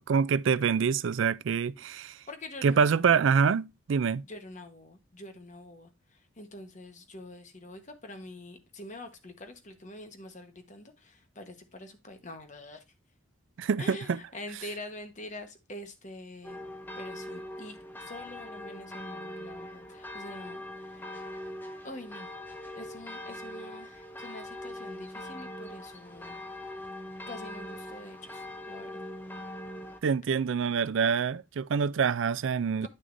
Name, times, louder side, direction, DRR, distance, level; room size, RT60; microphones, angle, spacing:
voice 1, 0.0-2.2 2.6-4.2 13.6-14.2 30.0-32.9, right 6 dB, 70° right, 0.4 m, -26 dB
voice 2, 2.3-3.1 4.2-12.8 13.8-16.6 17.0-21.5 21.8-22.3 22.7-26.4 27.3-29.1 32.8-32.9, left 1 dB, 35° left, 1.2 m, -45 dB
sound 1, 16.4-30.0, left 1 dB, 10° left, 0.6 m, -42 dB
9.4 x 6.4 x 2.6 m
head